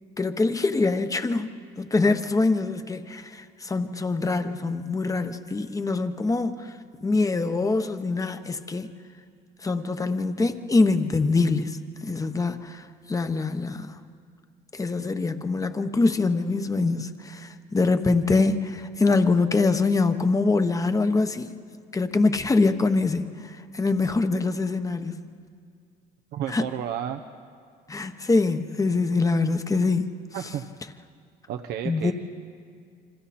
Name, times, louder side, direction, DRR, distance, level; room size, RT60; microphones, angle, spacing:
voice 1, 0.2-8.9 9.6-14.0 14.7-21.5 21.9-25.3 26.5-26.7 27.9-30.1 31.8-32.1, left 3 dB, 20° left, 9 dB, 1.1 m, -24 dB
voice 2, 26.3-27.2 30.3-30.6 31.5-32.1, right 10 dB, 75° right, 5 dB, 0.9 m, -31 dB
29.0 x 26.0 x 4.3 m, 2.2 s
cardioid pair, 110°, 17 cm